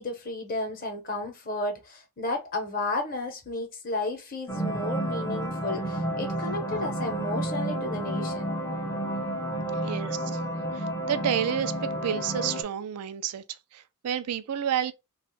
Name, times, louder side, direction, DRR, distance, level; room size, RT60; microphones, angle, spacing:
voice 1, 0.0-8.6, left 2 dB, 40° left, 0.8 m, -33 dB
sound 1, 4.5-12.6, right 1 dB, 15° left, 0.5 m, -31 dB
voice 2, 9.7-10.4 10.7-14.9, right 9 dB, 85° right, 0.4 m, -30 dB
2.4 x 2.4 x 3.7 m
head